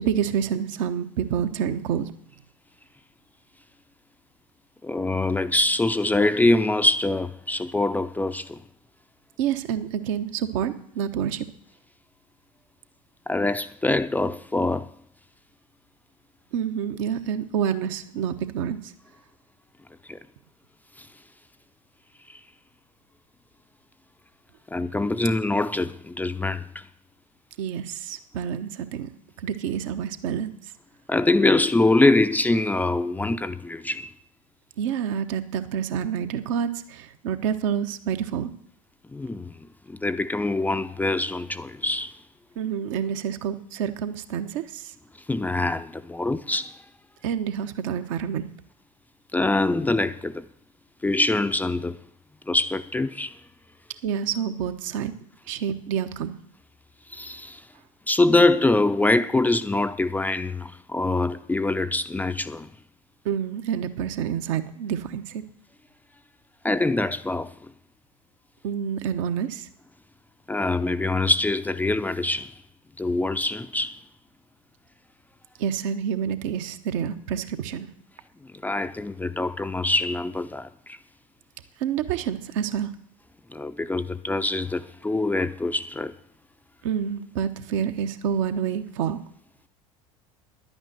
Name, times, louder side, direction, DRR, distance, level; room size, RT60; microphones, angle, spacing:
voice 1, 0.0-2.1 9.4-11.5 16.5-18.9 27.6-29.1 29.4-30.5 34.8-38.5 42.6-44.9 47.2-48.5 54.0-55.1 55.5-56.4 63.2-65.4 68.6-69.7 75.6-77.9 81.8-82.9 86.8-89.2, right 8 dB, 60° right, 1.1 m, -28 dB
voice 2, 4.8-8.6 13.3-14.9 20.1-20.2 21.0-21.1 24.7-26.8 31.1-34.1 39.1-39.5 39.9-42.1 45.3-46.8 49.3-50.4 51.0-52.0 52.5-53.4 57.1-57.6 58.1-62.7 66.6-67.5 70.5-72.5 73.0-74.0 78.6-81.0 83.5-86.1, left 2 dB, 10° left, 0.5 m, -24 dB
11.0 x 8.8 x 7.9 m
figure-of-eight pair, 70°, 19 cm